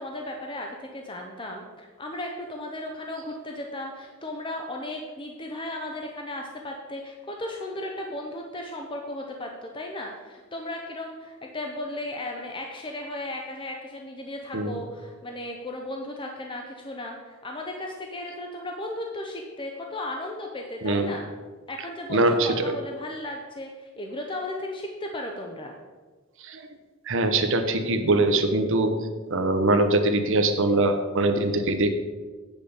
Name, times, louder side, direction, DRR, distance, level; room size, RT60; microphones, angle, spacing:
voice 1, 0.0-21.3 21.7-25.8, left 1 dB, 25° left, 1 dB, 0.7 m, -35 dB
voice 2, 22.1-22.7 26.4-26.6 27.1-29.0 29.3-31.9, right 2 dB, 60° right, 7 dB, 0.9 m, -22 dB
9.1 x 5.0 x 7.0 m, 1.4 s
head